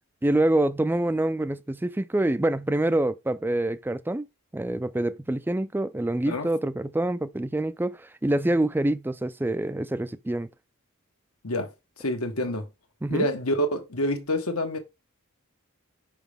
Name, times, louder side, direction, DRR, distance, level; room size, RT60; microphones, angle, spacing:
voice 1, 0.2-4.3 4.5-10.5 13.0-13.3, right 1 dB, 10° right, 0.3 m, -26 dB
voice 2, 12.0-12.7 13.1-14.8, left 1 dB, 85° left, 1.5 m, -27 dB
5.9 x 5.0 x 3.5 m
head